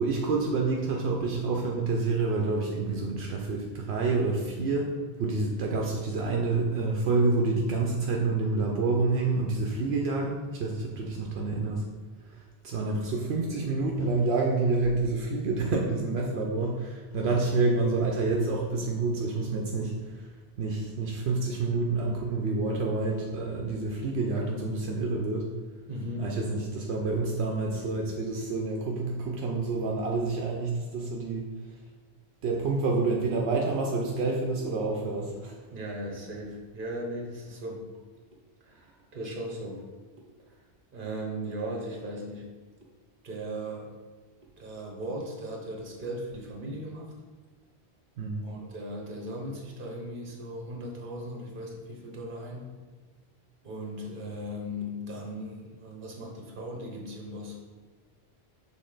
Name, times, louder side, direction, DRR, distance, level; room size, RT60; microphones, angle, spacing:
voice 1, 0.0-11.9 12.3-20.3 20.6-25.5 26.2-31.5 32.4-35.6 48.2-48.4, right 3 dB, 80° right, 0 dB, 0.9 m, -28 dB
voice 2, 25.9-26.3 35.7-37.9 38.6-39.8 40.9-42.5 43.2-44.0 44.6-47.1 48.4-52.7 53.6-57.6, equal, 55° right, 0 dB, 1.3 m, -37 dB
6.5 x 3.8 x 3.8 m, 1.3 s
omnidirectional pair, 1.1 m